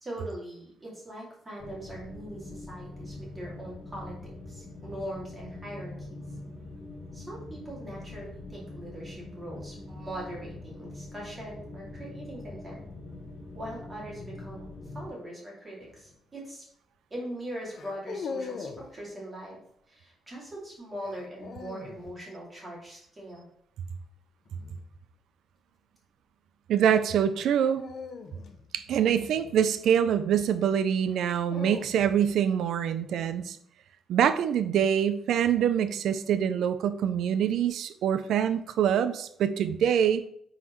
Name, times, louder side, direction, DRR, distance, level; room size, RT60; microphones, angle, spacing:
voice 1, 0.0-6.2 7.1-12.8 13.5-16.6 17.1-19.6 19.9-23.5 28.1-28.2, right 1 dB, 15° right, -5 dB, 2.4 m, -41 dB
sound 1, 1.6-15.1, left 2 dB, 75° left, 1.6 m, -43 dB
sound 2, 15.8-16.1 17.7-18.9 21.0-22.0 24.5-24.8 27.6-30.0 31.1-32.4, left 5 dB, 45° left, 0.5 m, -41 dB
voice 2, 26.7-27.8 28.7-33.6 34.1-40.2, right 9 dB, 70° right, 12 dB, 0.4 m, -25 dB
9.3 x 3.9 x 3.0 m, 0.69 s
cardioid pair, 180°, 0 cm